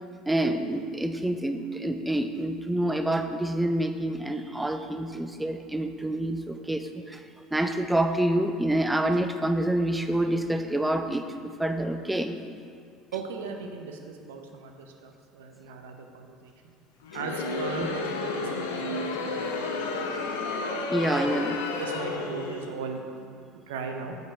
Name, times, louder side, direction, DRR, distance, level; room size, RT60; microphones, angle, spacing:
voice 1, 0.3-7.2 7.5-12.4 17.8-17.9 20.9-21.6, right 1 dB, 10° right, 7 dB, 0.5 m, -27 dB
voice 2, 13.1-16.5 17.1-19.7 19.9-20.2 20.9-21.1 21.8-23.2 23.5-24.2, right 4 dB, 75° right, 3 dB, 0.7 m, -38 dB
Crowd, 17.0-22.8, left 3 dB, 80° left, 0.6 m, -31 dB
8.0 x 4.6 x 4.2 m, 2.4 s
hypercardioid pair, 70°, 0 cm